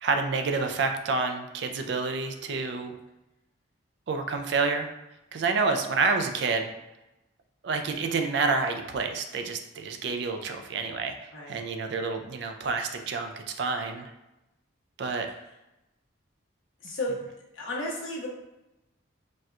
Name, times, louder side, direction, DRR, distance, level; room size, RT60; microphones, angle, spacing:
voice 1, 0.0-3.0 4.1-4.9 5.3-6.7 7.6-11.2 11.5-14.1 15.0-15.3, right 4 dB, 60° right, 6 dB, 0.3 m, -28 dB
voice 2, 16.8-17.2 17.5-18.3, left 1 dB, 80° left, -3 dB, 0.9 m, -33 dB
4.2 x 2.2 x 2.4 m, 0.93 s
head